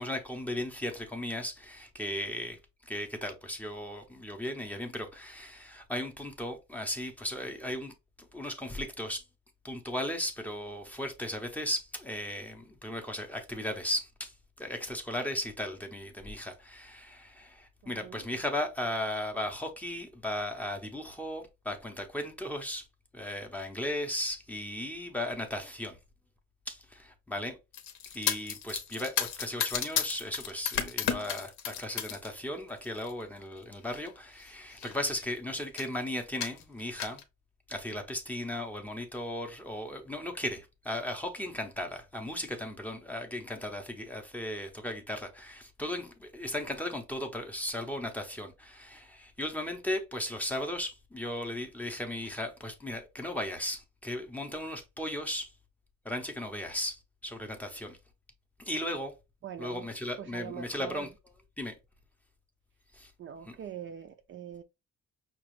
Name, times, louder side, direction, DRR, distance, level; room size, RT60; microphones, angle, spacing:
voice 1, 0.0-7.9 8.2-9.2 9.6-14.3 14.6-22.9 23.1-26.0 26.7-27.6 28.1-37.2 37.7-55.5 56.0-58.0 58.6-59.1 59.6-61.1 61.6-61.7 62.9-63.1 63.5-63.6, left 1 dB, 5° left, 0.6 m, -36 dB
voice 2, 17.8-18.2 59.4-59.9 60.2-61.1 63.2-64.6, right 9 dB, 40° right, 0.4 m, -43 dB
sound 1, 27.7-32.3 32.7-33.1 34.0-34.1 34.4-34.5 34.7-35.3 35.8-36.0 36.4-37.2, left 9 dB, 80° left, 0.9 m, -33 dB
5.8 x 2.3 x 3.0 m
cardioid pair, 170°, 31 cm